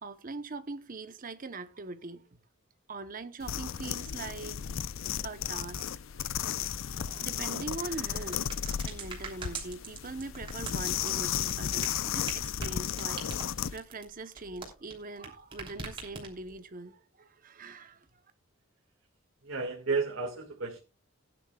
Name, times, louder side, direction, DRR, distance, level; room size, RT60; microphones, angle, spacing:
voice 1, 0.0-2.2 2.9-4.6 5.2-5.9 6.8-8.5 8.8-18.1, right 3 dB, 40° right, 0.9 m, -42 dB
sound 1, 3.4-13.8, left 9 dB, 65° left, 0.5 m, -34 dB
sound 2, 7.6-15.3 15.5-16.5, right 4 dB, 25° right, 3.3 m, -42 dB
voice 2, 19.4-20.8, right 4 dB, 70° right, 2.0 m, -32 dB
18.5 x 10.0 x 2.3 m
head